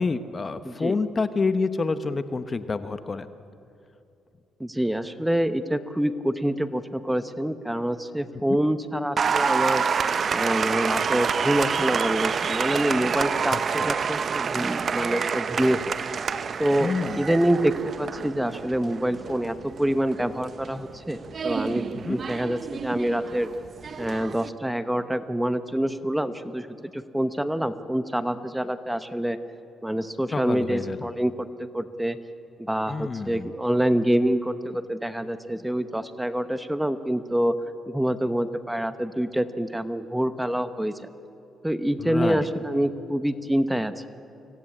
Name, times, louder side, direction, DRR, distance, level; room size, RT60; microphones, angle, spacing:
voice 1, 0.0-3.3 8.5-8.6 13.5-13.9 16.8-17.3 21.9-22.2 30.3-31.1 32.9-33.5 42.0-42.5, left 4 dB, 30° left, 11 dB, 0.9 m, -28 dB
voice 2, 4.6-9.8 10.3-15.9 16.6-23.5 24.0-29.4 29.8-31.5 31.7-32.2 32.6-37.6 37.9-41.1 41.6-44.1, right 1 dB, 5° right, 11 dB, 1.0 m, -26 dB
Applause, 9.2-24.5, right 6 dB, 45° right, 0.7 m, -28 dB
25.0 x 17.0 x 8.7 m, 2.7 s
cardioid pair, 90°, 0 cm